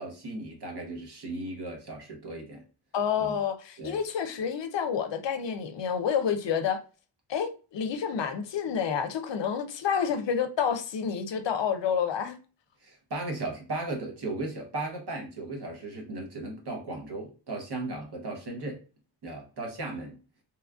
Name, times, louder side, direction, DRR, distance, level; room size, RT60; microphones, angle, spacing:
voice 1, 0.0-2.6 3.2-3.3 3.8-4.0 12.8-18.8 19.2-20.1, right 2 dB, 55° right, 1.0 m, -36 dB
voice 2, 2.9-6.8 7.3-12.4, left 7 dB, 65° left, 0.5 m, -29 dB
3.0 x 2.4 x 2.3 m
cardioid pair, 65°, 48 cm